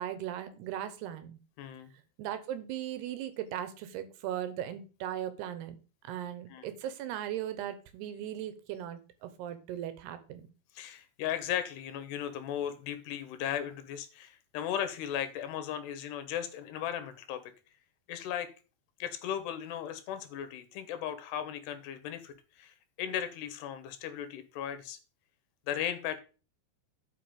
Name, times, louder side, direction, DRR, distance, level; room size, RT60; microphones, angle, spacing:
voice 1, 0.0-1.4 2.2-5.8 6.0-10.5, right 11 dB, 80° right, 12 dB, 3.0 m, -38 dB
voice 2, 1.6-1.9 6.5-6.7 10.7-17.5 18.1-18.5 19.0-25.0 25.7-26.2, left 10 dB, 80° left, 11 dB, 3.2 m, -36 dB
10.5 x 5.4 x 5.2 m, 0.34 s
omnidirectional pair, 4.7 m